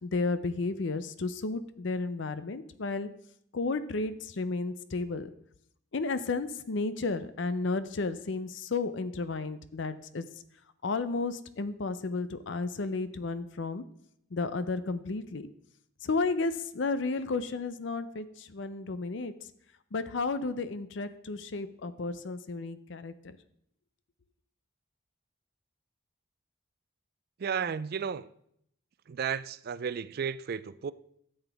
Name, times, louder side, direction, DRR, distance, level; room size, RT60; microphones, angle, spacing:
voice 1, 0.0-3.1 3.5-5.3 5.9-10.2 10.8-13.8 14.3-15.5 16.0-19.3 19.9-23.4, left 3 dB, 65° left, 0.6 m, -33 dB
voice 2, 27.4-28.3 29.1-30.9, right 7 dB, 50° right, 0.4 m, -33 dB
12.5 x 8.0 x 3.5 m
head